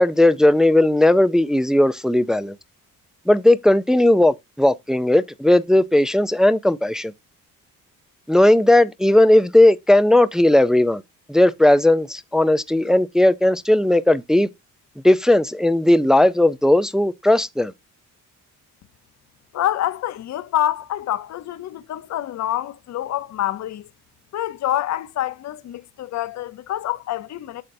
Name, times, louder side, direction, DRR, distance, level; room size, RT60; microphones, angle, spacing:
voice 1, 0.0-2.6 3.3-7.1 8.3-11.0 11.3-14.5 15.0-17.7, left 1 dB, ahead, 0.4 m, -16 dB
voice 2, 19.5-23.9 24.3-27.6, left 12 dB, 55° left, 0.8 m, -26 dB
8.6 x 6.5 x 2.6 m
cardioid pair, 125°, 33 cm